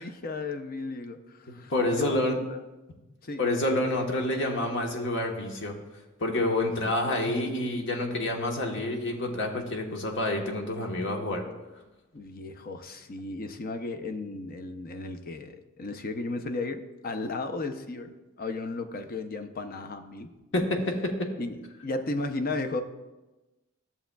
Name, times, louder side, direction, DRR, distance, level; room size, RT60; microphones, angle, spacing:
voice 1, 0.0-1.7 2.0-2.6 3.2-3.4 12.1-20.3 21.4-22.8, left 3 dB, 45° left, 8 dB, 0.6 m, -35 dB
voice 2, 1.7-2.4 3.4-5.8 6.2-11.4 20.5-21.3, left 1 dB, 65° left, 2 dB, 1.2 m, -28 dB
13.5 x 7.0 x 2.3 m, 1.1 s
head